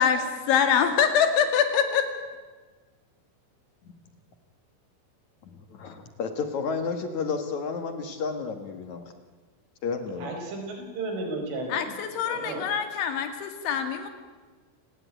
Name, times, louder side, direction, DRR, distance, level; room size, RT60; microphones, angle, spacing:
voice 1, 0.0-2.1 11.7-14.1, left 7 dB, 75° left, 7 dB, 4.6 m, -24 dB
voice 2, 5.4-9.0 9.8-10.3, left 5 dB, 60° left, 7 dB, 2.0 m, -32 dB
voice 3, 10.2-12.0 12.3-12.7, right 2 dB, 85° right, 3 dB, 7.4 m, -34 dB
28.5 x 18.5 x 9.3 m, 1.4 s
omnidirectional pair, 5.4 m